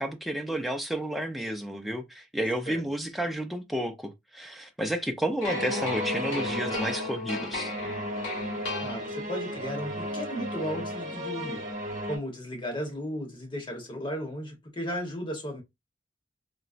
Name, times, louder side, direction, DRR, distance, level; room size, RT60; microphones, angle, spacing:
voice 1, 0.0-7.7, right 1 dB, ahead, 0.5 m, -31 dB
sound 1, 5.4-9.5, left 2 dB, 90° left, 1.6 m, -35 dB
sound 2, 5.4-12.2, equal, 45° right, 1.1 m, -35 dB
voice 2, 8.8-11.7 12.1-15.6, equal, 30° left, 1.1 m, -35 dB
3.9 x 2.2 x 2.4 m
head